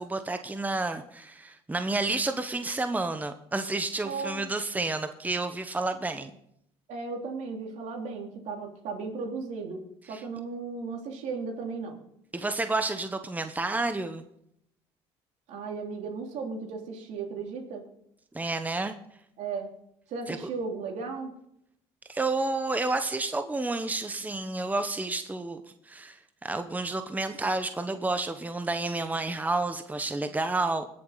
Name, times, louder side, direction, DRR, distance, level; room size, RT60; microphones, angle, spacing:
voice 1, 0.0-6.3 10.1-10.2 12.3-14.2 18.3-18.9 20.3-20.4 22.1-25.6 25.9-30.9, right 2 dB, 15° right, 8 dB, 1.0 m, -30 dB
voice 2, 4.0-4.5 6.9-12.0 15.5-17.9 19.4-19.7 20.1-21.3, right 4 dB, 70° right, 2 dB, 3.1 m, -35 dB
19.5 x 7.4 x 4.0 m, 0.75 s
supercardioid pair, 75°, 12 cm